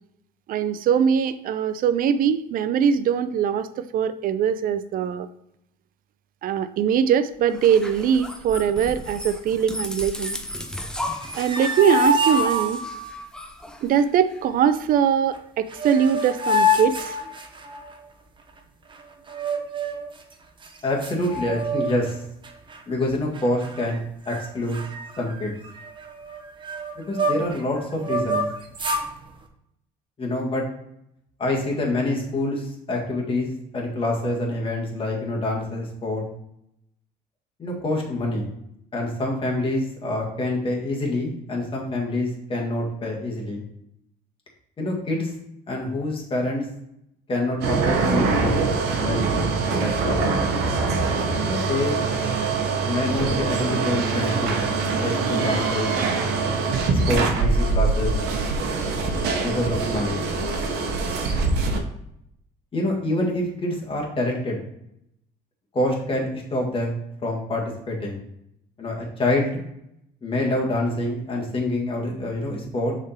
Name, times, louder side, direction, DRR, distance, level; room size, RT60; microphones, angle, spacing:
voice 1, 0.5-5.3 6.4-10.4 11.4-12.8 13.8-17.2, right 8 dB, 55° right, 13 dB, 0.5 m, -22 dB
sound 1, 7.5-14.4, left 1 dB, 5° left, 0.6 m, -35 dB
sound 2, 11.1-13.2 15.3-15.4 15.7-17.9 19.3-20.1 20.6-20.7 21.0-22.1 22.4-22.8 23.3-24.0 24.3-24.4 24.7-27.6 28.0-29.1, left 1 dB, 30° right, 0.9 m, -26 dB
voice 2, 20.8-22.2 22.9-24.0 24.3-24.8 25.2-25.5 27.0-28.4 30.2-30.6 31.4-36.2 37.6-38.5 38.9-43.6 44.8-45.3 45.7-46.7 47.3-48.6 48.9-50.3 51.4-52.0 52.9-54.5 54.9-55.9 56.9-58.1 59.4-60.2 62.7-64.6 65.7-68.2 68.8-69.6 70.2-72.9, left 1 dB, 30° left, -1 dB, 1.8 m, -26 dB
sound 3, 47.6-61.8, right 4 dB, 75° right, 1.0 m, -23 dB
6.5 x 3.8 x 4.3 m, 0.79 s
cardioid pair, 110°, 17 cm